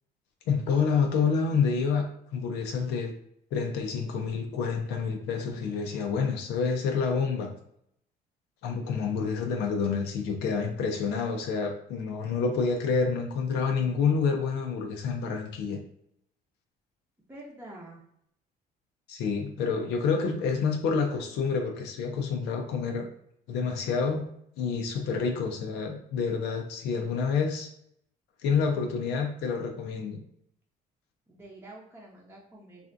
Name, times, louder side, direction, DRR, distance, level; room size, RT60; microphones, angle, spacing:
voice 1, 0.5-3.1 3.5-7.5 8.6-15.8 19.1-23.1 23.5-24.2 24.6-27.7 28.4-30.2, left 5 dB, 85° left, 3 dB, 0.5 m, -28 dB
voice 2, 17.3-18.0 31.3-32.9, right 1 dB, 10° right, -4 dB, 0.7 m, -47 dB
3.3 x 2.5 x 2.5 m, 0.72 s
cardioid pair, 110°, 17 cm